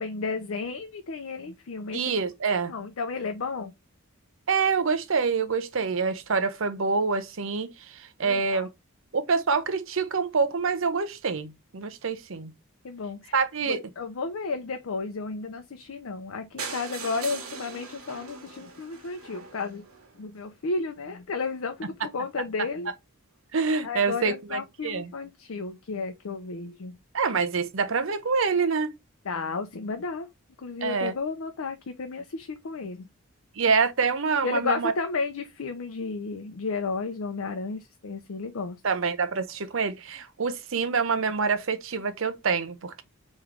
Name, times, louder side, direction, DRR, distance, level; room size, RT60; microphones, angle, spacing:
voice 1, 0.0-2.2 2.7-3.7 8.2-8.7 12.8-13.3 13.7-19.8 20.2-22.9 23.8-27.0 29.2-30.3 30.6-33.1 34.4-38.8, left 4 dB, 80° left, 0.5 m, -33 dB
voice 2, 1.9-2.7 4.5-8.7 9.1-12.5 13.3-13.8 23.5-25.1 27.1-28.9 30.8-31.1 33.6-34.9 38.8-43.0, right 5 dB, 70° right, 0.7 m, -26 dB
sound 1, 16.6-20.5 21.1-21.2 21.4-21.6 21.8-21.9 22.1-22.2, right 5 dB, 85° right, 1.3 m, -40 dB
3.7 x 3.1 x 3.1 m
head